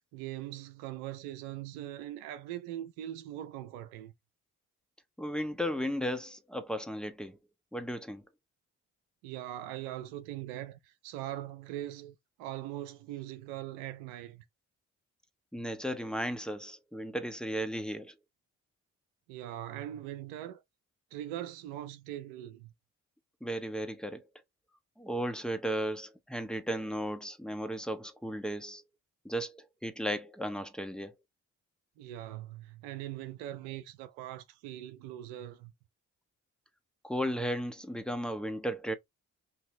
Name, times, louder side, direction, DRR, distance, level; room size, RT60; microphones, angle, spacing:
voice 1, 0.1-4.1 9.2-14.4 19.3-20.6 21.1-22.7 32.0-35.7, right 13 dB, 80° right, 0.6 m, -41 dB
voice 2, 5.2-7.4 7.7-8.2 15.5-18.1 23.4-24.2 25.0-28.8 29.2-31.1 37.0-38.9, equal, ahead, 1.3 m, -35 dB
5.8 x 2.7 x 3.2 m
hypercardioid pair, 40°, 38 cm